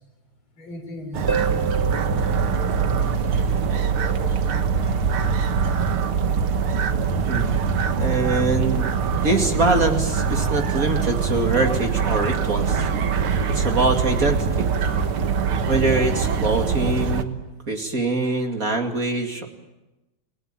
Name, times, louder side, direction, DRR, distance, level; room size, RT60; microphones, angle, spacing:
voice 1, 0.6-4.3, equal, 70° left, 4 dB, 5.5 m, -39 dB
sound 1, 1.1-17.2, right 6 dB, 90° right, 2.3 m, -23 dB
Harp, 1.3-3.8 7.3-7.4, right 6 dB, 25° right, 0.5 m, -30 dB
voice 2, 7.3-7.6 8.0-8.9 9.2-12.8 13.5-14.6 15.7-17.4 17.7-19.5, right 2 dB, 40° right, 3 dB, 2.8 m, -23 dB
30.0 x 19.0 x 9.0 m, 1.1 s
omnidirectional pair, 2.3 m